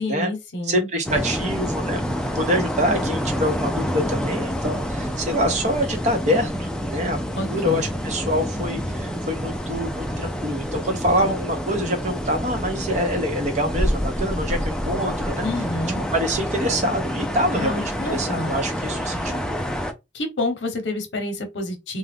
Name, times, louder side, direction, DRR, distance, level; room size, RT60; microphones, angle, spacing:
voice 1, 0.0-1.2 7.3-7.9 15.4-16.0 17.6-18.5 20.1-22.0, left 2 dB, 75° left, 0.8 m, -28 dB
voice 2, 0.7-2.0 2.3-7.2 7.5-15.5 16.1-17.8 18.1-19.6, equal, 40° right, 0.8 m, -25 dB
sound 1, 1.1-19.9, equal, 5° left, 0.3 m, -27 dB
2.4 x 2.2 x 3.3 m
head